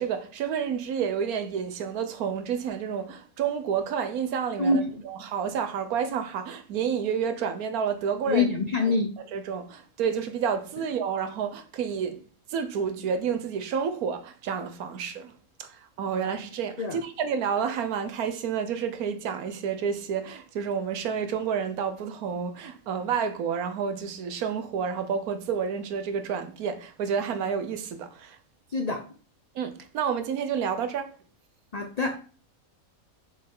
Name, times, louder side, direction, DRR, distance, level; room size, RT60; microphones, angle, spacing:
voice 1, 0.0-8.5 8.8-9.0 9.3-12.2 12.5-15.3 15.6-28.4 29.5-31.1, right 7 dB, 85° right, 1.3 m, -30 dB
voice 2, 4.6-4.9 8.3-9.1 16.8-17.0 28.7-29.0 31.7-32.2, left 3 dB, 45° left, 0.5 m, -25 dB
6.6 x 5.5 x 3.8 m
omnidirectional pair, 1.5 m